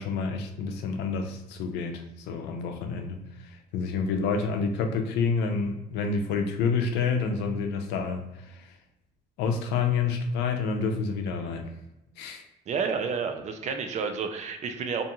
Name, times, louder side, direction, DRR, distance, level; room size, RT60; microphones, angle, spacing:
voice 1, 0.0-8.8 9.4-11.7 12.2-12.4, left 5 dB, 85° left, 4 dB, 0.5 m, -29 dB
voice 2, 12.7-15.0, right 5 dB, 45° right, 6 dB, 0.4 m, -30 dB
2.5 x 2.3 x 2.8 m, 0.93 s
cardioid pair, 110°, 17 cm